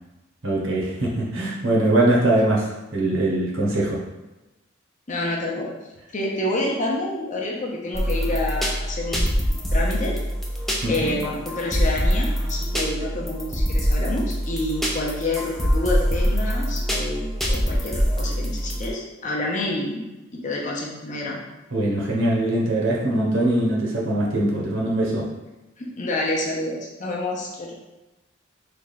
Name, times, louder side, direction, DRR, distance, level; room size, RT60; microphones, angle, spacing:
voice 1, 0.4-4.0 10.8-10.9 21.7-25.3, right 1 dB, 70° right, -3 dB, 0.9 m, -22 dB
voice 2, 5.1-5.7 6.1-10.2 10.9-21.4 25.8-27.7, left 1 dB, 35° left, -3 dB, 0.7 m, -28 dB
sound 1, 7.9-18.9, equal, ahead, 0.4 m, -24 dB
3.3 x 2.3 x 4.0 m, 1.0 s
head